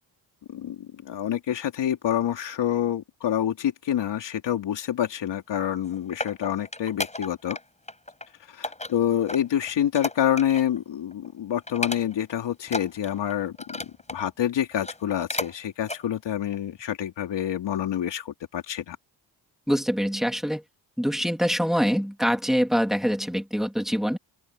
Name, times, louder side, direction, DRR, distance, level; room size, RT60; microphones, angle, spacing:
voice 1, 1.0-7.6 8.6-13.5 14.1-19.0, left 10 dB, 75° left, 3.2 m, -27 dB
sound 1, 5.6-7.6 7.9-8.3 8.6-10.8 11.1-11.3 11.7-12.3 12.6-14.2 14.7-15.5 15.8-16.0 16.5-16.6, left 2 dB, 15° left, 6.0 m, -34 dB
voice 2, 19.7-20.6 21.0-24.2, equal, ahead, 2.7 m, -24 dB
open air
cardioid pair, 70°, 43 cm